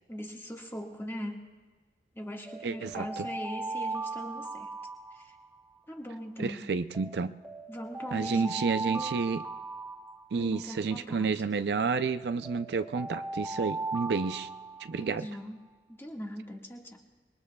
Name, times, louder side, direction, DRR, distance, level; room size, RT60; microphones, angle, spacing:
voice 1, 0.1-1.5 2.1-4.7 5.1-5.4 5.9-6.7 7.7-8.5 8.8-9.2 10.4-11.4 14.9-15.6 15.9-17.0, equal, 15° left, 1 dB, 1.6 m, -40 dB
Alarm, 2.5-5.8 6.9-10.8 11.9-15.2, right 3 dB, 10° right, 0.7 m, -38 dB
voice 2, 2.6-3.3 6.4-7.3 8.1-9.4 10.3-14.5 14.8-15.3, right 5 dB, 65° right, 11 dB, 0.4 m, -30 dB
26.0 x 22.0 x 2.3 m, 1.4 s
head